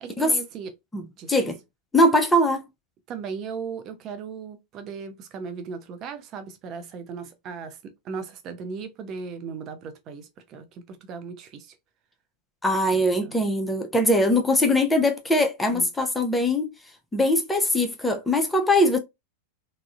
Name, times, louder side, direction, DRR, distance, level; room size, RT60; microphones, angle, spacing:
voice 1, 0.0-0.7 1.2-1.3 3.1-11.7 12.9-13.4 15.7-15.9, right 5 dB, 35° right, 0.6 m, -37 dB
voice 2, 0.9-1.6 1.9-2.6 12.6-16.7 17.1-19.0, left 1 dB, 10° left, 0.5 m, -21 dB
3.6 x 2.0 x 2.3 m
figure-of-eight pair, 90°, 0 cm